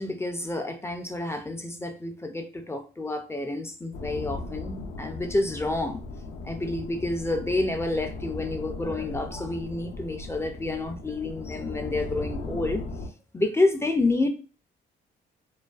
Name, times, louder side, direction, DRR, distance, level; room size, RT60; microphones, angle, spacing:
voice 1, 0.0-6.0 6.4-12.8 13.3-14.3, left 2 dB, 15° left, 0.3 m, -29 dB
sound 1, 3.9-13.1, left 2 dB, 75° left, 0.5 m, -37 dB
2.4 x 2.2 x 2.3 m
cardioid pair, 90°, 20 cm